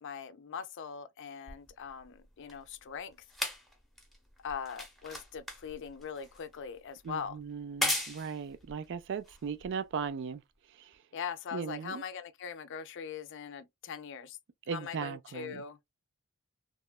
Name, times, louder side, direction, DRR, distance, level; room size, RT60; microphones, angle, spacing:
voice 1, 0.0-3.2 4.4-7.4 11.1-14.4 14.7-15.8, left 6 dB, 55° left, 0.4 m, -41 dB
sound 1, 1.5-10.1 10.9-11.0, left 1 dB, ahead, 0.7 m, -39 dB
voice 2, 7.0-10.4 10.8-10.9 11.5-12.0 14.7-15.6, right 6 dB, 55° right, 0.4 m, -38 dB
3.0 x 2.2 x 2.3 m
head